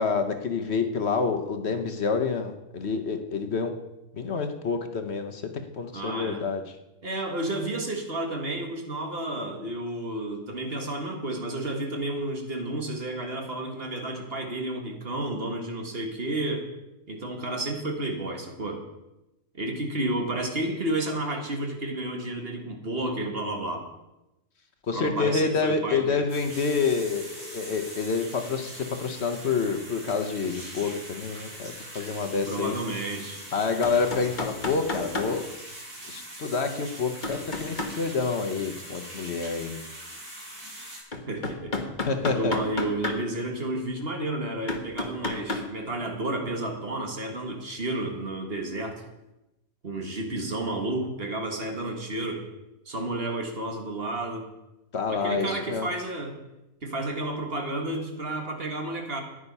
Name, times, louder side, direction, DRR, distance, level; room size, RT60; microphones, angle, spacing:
voice 1, 0.0-3.7 4.1-5.4 5.7-6.6 24.9-27.3 27.5-32.7 33.5-35.5 36.1-39.8 42.1-42.6 54.9-55.9, left 4 dB, 55° left, 6 dB, 1.3 m, -28 dB
voice 2, 5.9-6.4 7.0-16.7 17.1-18.8 19.5-23.9 24.9-26.2 32.5-33.4 33.8-34.1 41.3-41.8 42.4-49.0 49.8-52.4 52.9-54.5 55.1-56.3 56.8-59.2, right 1 dB, 50° right, 2 dB, 2.0 m, -31 dB
Public Bathroom Sink Faucet, 26.3-41.0, right 1 dB, 15° right, 5.9 m, -42 dB
sound 1, 33.8-35.3 37.2-37.9 41.1-43.2 44.0-44.1 44.7-45.7 48.9-49.0, left 2 dB, 40° left, 1.4 m, -31 dB
14.5 x 9.9 x 5.5 m, 0.95 s
omnidirectional pair, 1.3 m